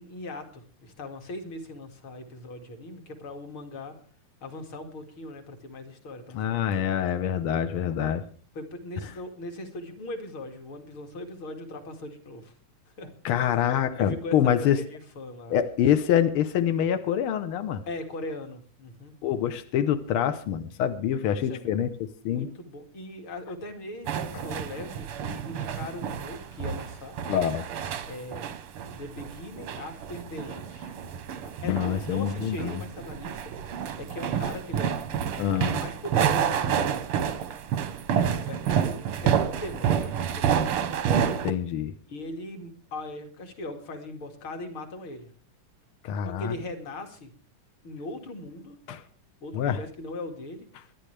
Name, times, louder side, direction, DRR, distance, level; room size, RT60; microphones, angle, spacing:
voice 1, 0.0-3.9 4.4-7.1 8.0-8.2 8.5-12.5 13.0-13.1 13.9-15.6 17.8-19.1 21.2-21.7 22.3-27.2 28.1-28.5 28.9-30.9 31.6-35.3 35.8-37.0 38.1-40.8 42.1-45.3 46.2-47.3 47.8-48.8 49.4-50.9, left 2 dB, 45° left, 5 dB, 2.6 m, -39 dB
voice 2, 6.3-8.2 13.2-14.8 15.5-17.8 19.2-22.5 24.3-24.4 27.3-27.7 31.6-32.8 35.4-35.8 38.1-38.2 41.4-41.9 46.0-46.5 48.9-49.0 49.5-49.8, left 9 dB, 85° left, 10 dB, 1.1 m, -26 dB
sound 1, 24.0-41.5, right 8 dB, 65° right, 1.4 m, -29 dB
24.0 x 11.0 x 3.3 m, 0.43 s
omnidirectional pair, 3.8 m